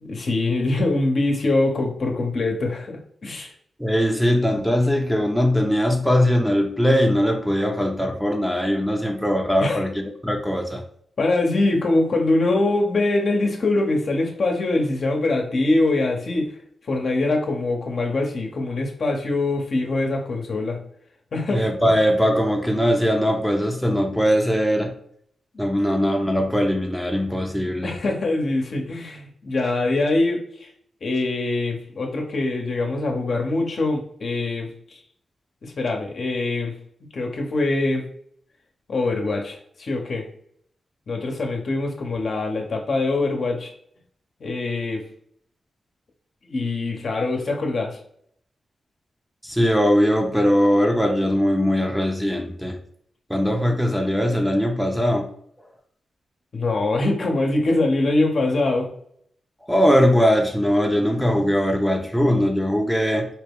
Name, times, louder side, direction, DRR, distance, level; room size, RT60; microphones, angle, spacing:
voice 1, 0.0-3.5 9.6-9.9 11.2-16.5 16.9-20.8 21.3-21.6 21.8-22.0 25.5-25.6 27.8-30.7 31.0-35.0 35.6-36.7 37.1-38.0 38.9-40.3 41.1-43.7 44.4-45.0 46.4-48.0 56.5-58.9, left 2 dB, 60° left, 0.9 m, -23 dB
voice 2, 3.8-10.8 21.5-24.9 25.6-28.0 49.4-52.8 53.3-55.3 59.7-63.3, equal, ahead, 0.8 m, -20 dB
4.5 x 2.2 x 3.5 m
supercardioid pair, 45°, 0 cm